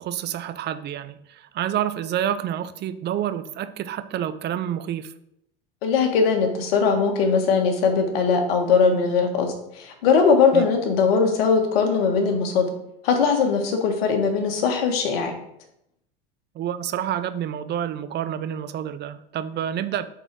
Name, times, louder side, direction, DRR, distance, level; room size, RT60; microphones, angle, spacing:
voice 1, 0.0-5.1 10.5-10.6 16.5-20.0, right 10 dB, 35° right, 13 dB, 0.6 m, -28 dB
voice 2, 5.8-12.7 13.0-15.3, left 5 dB, 80° left, 4 dB, 1.6 m, -20 dB
8.0 x 4.0 x 4.7 m, 0.78 s
supercardioid pair, 105°, 29 cm